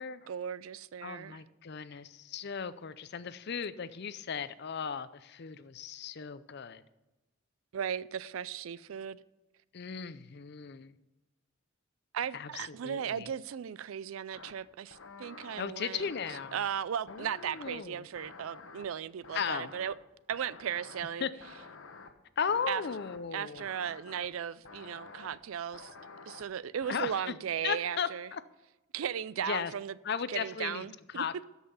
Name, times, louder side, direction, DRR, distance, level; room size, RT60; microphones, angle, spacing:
voice 1, 0.3-1.4 7.7-9.2 12.1-16.1 16.5-19.9 20.3-21.3 22.7-22.8 23.3-25.9 26.3-28.3 28.9-30.0 30.3-31.2, right 8 dB, 80° right, 0.4 m, -36 dB
voice 2, 1.0-6.8 9.7-11.0 12.3-13.3 15.6-16.6 17.1-18.1 19.3-19.7 21.2-21.3 22.4-23.7 26.9-27.3 27.6-28.4 29.4-29.7 30.0-31.4, left 6 dB, 50° left, 0.5 m, -36 dB
sound 1, 14.3-14.5 14.9-15.6 16.0-16.7 17.1-17.8 18.2-18.9 19.2-19.9 20.3-21.0 21.4-22.1 22.5-23.2 23.6-24.3 24.7-25.4 25.7-26.4 26.8-27.2, left 4 dB, 70° left, 1.0 m, -50 dB
13.5 x 5.6 x 5.6 m
head